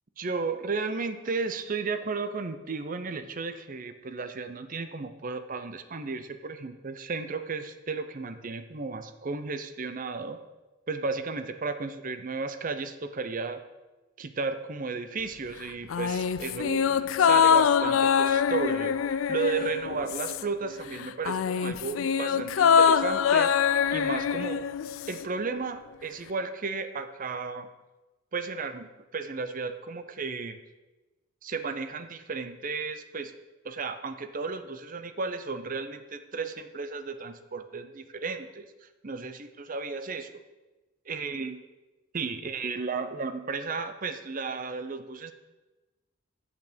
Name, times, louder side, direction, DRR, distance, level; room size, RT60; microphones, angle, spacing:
voice 1, 0.2-10.4 10.9-13.6 14.2-23.5 23.9-24.6 25.1-27.7 28.3-28.9 29.1-30.6 31.4-33.3 33.6-38.6 39.0-40.3 41.1-41.6 42.1-45.3, right 4 dB, 45° right, 10 dB, 0.6 m, -34 dB
sound 1, 15.9-20.7 20.9-25.3 25.5-25.6, left 7 dB, 90° left, 0.4 m, -24 dB
9.6 x 8.4 x 5.1 m, 1.1 s
head